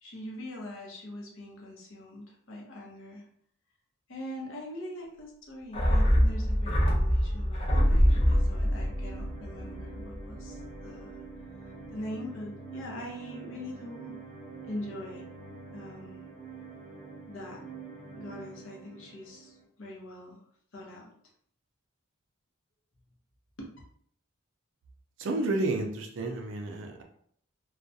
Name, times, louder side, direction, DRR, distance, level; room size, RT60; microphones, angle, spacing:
voice 1, 0.0-3.2 4.1-11.1 11.5-14.2 14.6-15.2 15.7-16.2 17.3-17.6 18.2-20.4 20.7-21.1 23.6-23.7, left 1 dB, 65° left, -2 dB, 0.7 m, -42 dB
sound 1, 5.7-10.3 10.6-10.7, equal, 25° left, 0.5 m, -24 dB
sound 2, 7.7-19.6, right 3 dB, ahead, 1.0 m, -45 dB
voice 2, 25.2-27.0, right 2 dB, 65° right, 2 dB, 0.4 m, -31 dB
2.3 x 2.1 x 2.6 m, 0.64 s
head